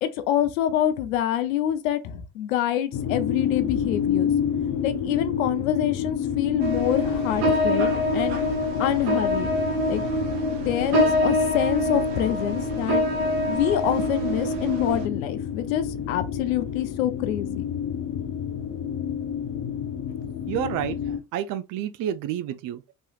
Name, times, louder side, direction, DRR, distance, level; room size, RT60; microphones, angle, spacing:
voice 1, 0.0-4.3 4.8-8.4 8.8-9.5 9.9-10.0 10.6-13.0 13.5-17.7, left 11 dB, 85° left, 0.5 m, -26 dB
sound 1, 2.9-21.2, left 8 dB, 45° left, 0.6 m, -29 dB
sound 2, 6.6-15.1, equal, 75° right, 0.9 m, -25 dB
voice 2, 20.5-22.9, right 10 dB, 55° right, 0.4 m, -30 dB
3.0 x 3.0 x 2.3 m
hypercardioid pair, 55°, 40 cm